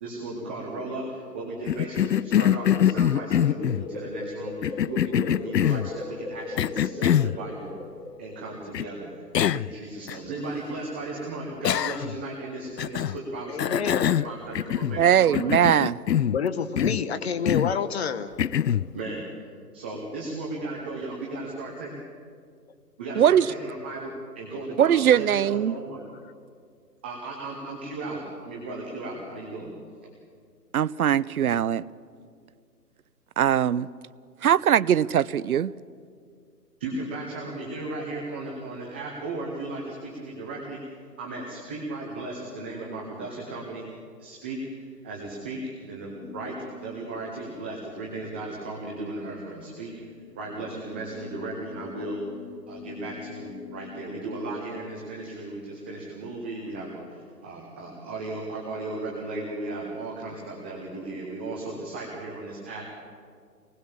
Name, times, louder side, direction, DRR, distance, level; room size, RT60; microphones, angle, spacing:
voice 1, 0.0-7.7 8.2-15.4 18.9-19.2 19.7-21.9 23.0-26.0 27.0-29.7 36.8-40.8 41.2-43.9 44.2-52.2 52.7-62.9, right 2 dB, 5° right, -2 dB, 0.6 m, -36 dB
Cough, 1.7-3.9 4.6-5.9 6.6-7.4 8.7-8.9 9.3-9.7 10.1-10.2 11.6-12.2 12.8-13.2 13.6-15.0 15.3-16.4 16.8-17.1 17.5-17.8 18.4-18.9, left 10 dB, 85° left, 0.6 m, -24 dB
sound 1, 2.1-8.6, left 3 dB, 60° left, 6.7 m, -39 dB
voice 2, 13.5-14.1 16.3-18.3, left 6 dB, 40° left, 11 dB, 1.1 m, -28 dB
voice 3, 15.0-16.0 23.2-23.5 24.8-25.7 30.7-31.8 33.4-33.9 34.4-35.7, right 9 dB, 65° right, 20 dB, 0.6 m, -21 dB
sound 2, 46.1-55.9, left 5 dB, 10° left, 1.1 m, -46 dB
25.0 x 19.5 x 7.1 m, 2.2 s
figure-of-eight pair, 140°, 48 cm